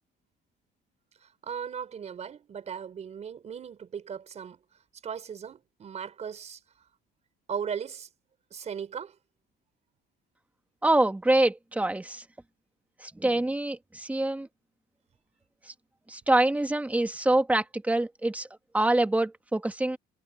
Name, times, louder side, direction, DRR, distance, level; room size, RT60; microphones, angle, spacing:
voice 1, 1.2-4.6 5.0-6.6 7.5-8.1 8.5-9.2, right 7 dB, 35° right, 4.4 m, -37 dB
voice 2, 10.8-12.2 13.0-14.5 15.7-15.8 16.1-18.5 18.7-20.0, right 2 dB, 5° right, 1.9 m, -25 dB
cardioid pair, 160°, 20 cm